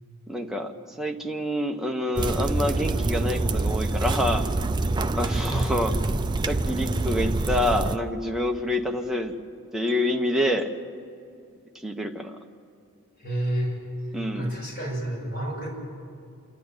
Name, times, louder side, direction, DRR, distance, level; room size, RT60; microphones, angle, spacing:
voice 1, 0.3-4.5 5.1-5.9 6.5-9.3 9.7-10.7 11.7-12.4 14.1-14.5, left 1 dB, ahead, 2 dB, 1.0 m, -27 dB
sound 1, 2.2-8.0, right 2 dB, 20° right, 0.4 m, -26 dB
voice 2, 5.2-5.7 13.2-13.8 14.3-15.7, right 1 dB, 40° left, -4 dB, 7.4 m, -30 dB
27.5 x 11.5 x 9.0 m, 2.4 s
head